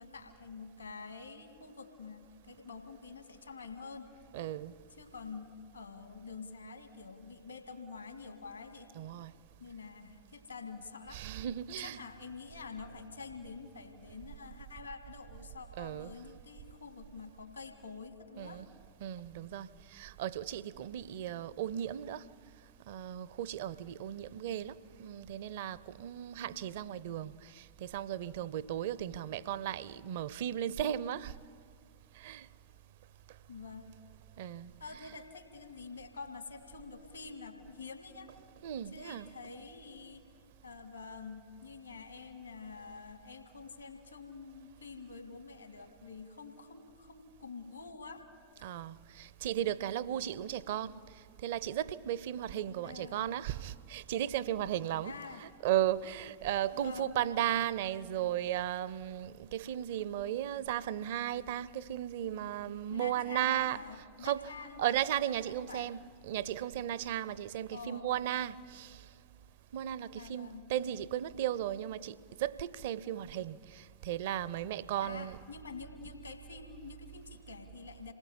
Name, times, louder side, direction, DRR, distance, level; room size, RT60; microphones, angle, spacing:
voice 1, 0.0-4.1 5.0-8.9 9.6-11.2 11.8-18.6 33.5-33.9 34.8-38.3 38.9-40.2 40.6-48.2 48.6-48.7 52.8-53.2 55.0-55.4 56.7-57.2 62.9-65.0 65.6-65.9 67.7-68.1 70.2-70.7 75.0-78.1, left 4 dB, 80° left, 2.0 m, -47 dB
voice 2, 4.3-4.7 9.0-9.3 11.1-12.0 15.8-16.1 18.4-18.7 19.0-22.3 22.9-31.4 32.1-32.5 34.4-35.0 38.6-39.3 48.6-51.0 51.4-63.8 64.2-64.5 64.8-69.1 69.7-75.4, right 11 dB, 55° right, 0.5 m, -35 dB
27.5 x 19.5 x 5.8 m
figure-of-eight pair, 90°, 0 cm